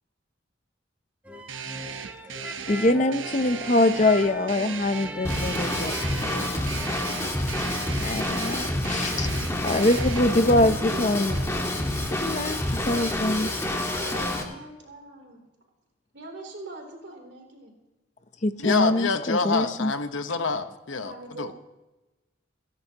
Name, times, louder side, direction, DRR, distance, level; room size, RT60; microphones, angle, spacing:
sound 1, 1.2-6.9, right 1 dB, 10° right, 0.9 m, -39 dB
sound 2, 1.5-10.2, right 7 dB, 80° right, 0.9 m, -37 dB
voice 1, 2.7-5.9 8.0-9.3 9.6-11.4 12.2-12.6 12.9-13.5 18.4-19.9, left 1 dB, 35° left, 10 dB, 0.6 m, -23 dB
Drum kit / Drum, 5.2-14.4, left 1 dB, 15° left, 1.5 m, -28 dB
voice 2, 10.5-11.8 14.0-15.4 16.1-17.7 21.0-21.5, right 1 dB, 60° right, 2 dB, 3.2 m, -41 dB
voice 3, 18.6-21.5, left 4 dB, 90° left, 8 dB, 1.1 m, -27 dB
28.0 x 10.5 x 2.9 m, 1.1 s
head